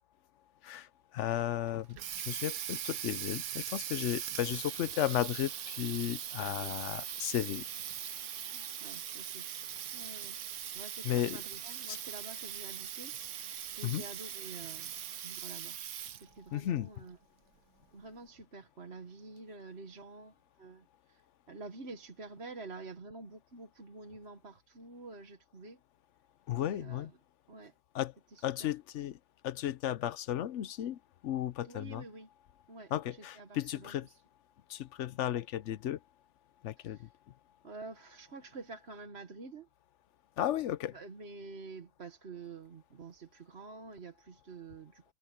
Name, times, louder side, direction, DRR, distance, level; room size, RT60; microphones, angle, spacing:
voice 1, 1.1-2.0 2.3-7.6 11.0-11.4 11.9-12.0 13.8-14.0 16.5-16.9 26.5-27.1 27.9-28.1 28.4-29.1 29.4-32.0 32.9-34.1 34.7-36.0 36.6-37.0 40.4-40.9, left 12 dB, 65° left, 0.9 m, -34 dB
Water tap faucet, 1.7-16.4, right 10 dB, 85° right, 1.3 m, -41 dB
sound 1, 4.4-15.2, left 3 dB, 40° left, 2.7 m, -60 dB
voice 2, 6.4-7.0 8.5-9.5 9.9-10.4 10.7-15.8 16.1-17.2 17.9-25.8 26.6-27.2 27.5-27.7 28.3-28.7 31.6-32.3 32.7-34.2 36.8-37.1 37.6-39.7 40.9-45.1, right 3 dB, 50° right, 1.6 m, -49 dB
omnidirectional pair, 1.5 m